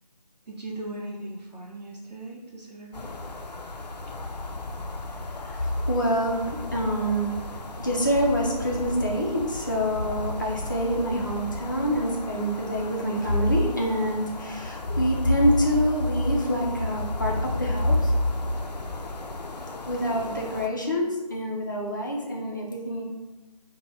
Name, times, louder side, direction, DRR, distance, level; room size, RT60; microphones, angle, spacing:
voice 1, 0.5-3.1, right 1 dB, 85° right, -3 dB, 0.7 m, -38 dB
sound 1, 2.9-20.7, left 2 dB, 90° left, 0.5 m, -36 dB
voice 2, 5.5-7.3 7.8-18.1 19.9-23.0, equal, 30° left, -2 dB, 0.5 m, -25 dB
3.9 x 2.2 x 3.2 m, 1.1 s
figure-of-eight pair, 165°, 21 cm